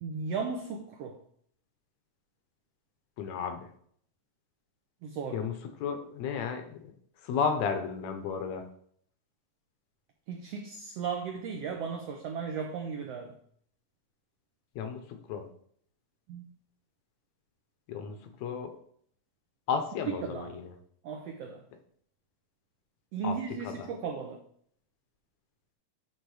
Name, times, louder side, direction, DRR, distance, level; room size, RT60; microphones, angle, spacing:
voice 1, 0.0-1.2 5.0-5.5 10.3-13.3 16.3-16.5 20.2-20.5 21.0-21.6 23.1-24.4, right 5 dB, 85° right, 4 dB, 1.4 m, -36 dB
voice 2, 3.2-3.7 5.3-6.9 7.2-8.7 14.8-15.5 17.9-18.7 19.7-20.7 23.2-23.4 23.6-23.9, left 6 dB, 75° left, 7 dB, 1.7 m, -33 dB
10.0 x 3.5 x 4.8 m, 0.63 s
omnidirectional pair, 3.6 m